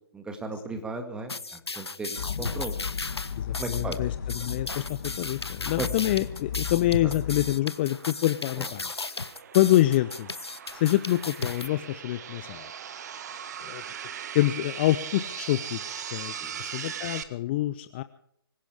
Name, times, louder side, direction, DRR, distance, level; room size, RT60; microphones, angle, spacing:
voice 1, 0.1-2.8 3.6-4.0 5.8-5.9 8.6-8.7 16.4-16.6, right 3 dB, 5° right, 6 dB, 2.0 m, -36 dB
sound 1, 1.3-11.7, left 3 dB, 90° left, 0.8 m, -36 dB
Distant rumbles, 2.2-7.6, left 8 dB, 45° left, 2.1 m, -35 dB
voice 2, 3.4-8.9 9.5-10.3 10.7-12.7 13.6-13.8 14.3-16.3 16.6-18.0, left 15 dB, 25° left, 13 dB, 0.6 m, -26 dB
sound 2, 6.4-17.2, right 8 dB, 40° right, 1.4 m, -40 dB
25.0 x 16.5 x 3.5 m, 0.69 s
figure-of-eight pair, 140°, 13 cm